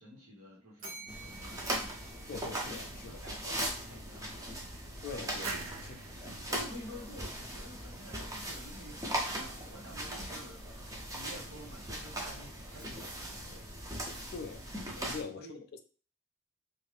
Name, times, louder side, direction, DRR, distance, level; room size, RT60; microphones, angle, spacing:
voice 1, 0.0-2.3 2.6-4.5 5.0-5.6 6.5-13.7 14.9-15.6, equal, 85° right, -3 dB, 1.2 m, -50 dB
Bell, 0.8-3.1, right 2 dB, 40° right, 0.8 m, -50 dB
sound 1, 1.1-15.2, right 1 dB, 15° right, 0.5 m, -39 dB
voice 2, 2.3-3.2 5.0-5.5 6.2-6.6 14.3-14.7 15.1-15.8, left 5 dB, 50° left, 8 dB, 0.3 m, -43 dB
sound 2, 5.4-8.1, right 4 dB, 65° right, 0.4 m, -45 dB
2.6 x 2.5 x 3.2 m, 0.38 s
head